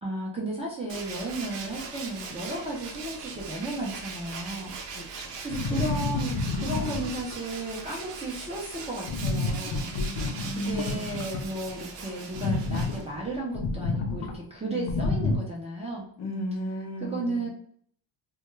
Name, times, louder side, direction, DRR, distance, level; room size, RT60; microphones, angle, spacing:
voice 1, 0.0-9.9 10.5-16.1 17.0-17.5, right 2 dB, 15° right, -4 dB, 0.4 m, -34 dB
Tools, 0.9-13.4, right 5 dB, 75° right, 0.6 m, -40 dB
voice 2, 4.9-5.4 9.9-11.4 14.7-15.1 16.2-17.5, left 1 dB, 40° left, 1 dB, 0.5 m, -35 dB
sound 1, 5.5-7.3 9.1-11.7 12.3-14.3 14.9-15.4, left 3 dB, 85° left, 0.7 m, -29 dB
2.2 x 2.2 x 3.0 m, 0.62 s
cardioid pair, 165°, 45 cm